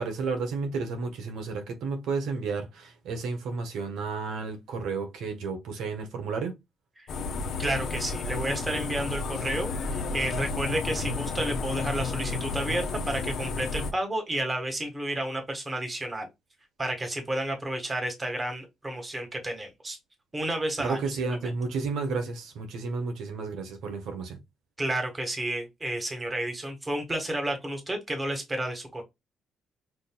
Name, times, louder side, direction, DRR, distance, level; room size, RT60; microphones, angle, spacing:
voice 1, 0.0-6.5 20.8-24.4, right 4 dB, 80° right, 1.3 m, -32 dB
sound 1, 7.1-13.9, left 4 dB, 75° left, 1.0 m, -32 dB
voice 2, 7.6-16.3 16.8-20.0 20.3-21.0 21.4-21.5 24.8-29.0, right 1 dB, 20° right, 1.5 m, -31 dB
6.4 x 2.6 x 2.2 m
cardioid pair, 90°, 0 cm